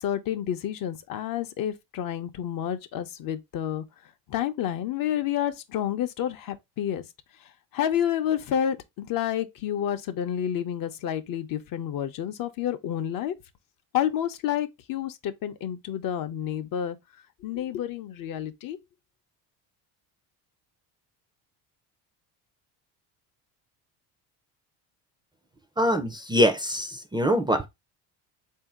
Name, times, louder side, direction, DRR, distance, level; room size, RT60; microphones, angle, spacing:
voice 1, 0.0-3.8 4.3-7.0 7.7-13.3 13.9-17.0 17.4-18.8, left 10 dB, 55° left, 0.7 m, -29 dB
voice 2, 25.8-27.7, equal, 10° right, 0.4 m, -23 dB
3.8 x 2.7 x 3.5 m
cardioid pair, 105°, 40 cm